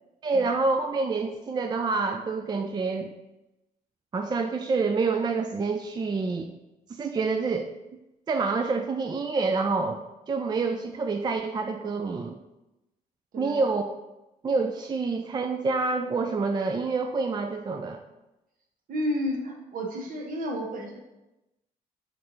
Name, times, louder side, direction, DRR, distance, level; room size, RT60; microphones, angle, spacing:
voice 1, 0.2-3.1 4.1-6.5 6.9-7.7 8.3-10.0 10.3-12.4 13.4-13.8 14.4-18.0, right 4 dB, 25° right, 5 dB, 0.3 m, -27 dB
voice 2, 18.9-21.0, equal, 60° right, 0 dB, 1.1 m, -31 dB
4.3 x 3.2 x 3.8 m, 0.97 s
cardioid pair, 80°, 16 cm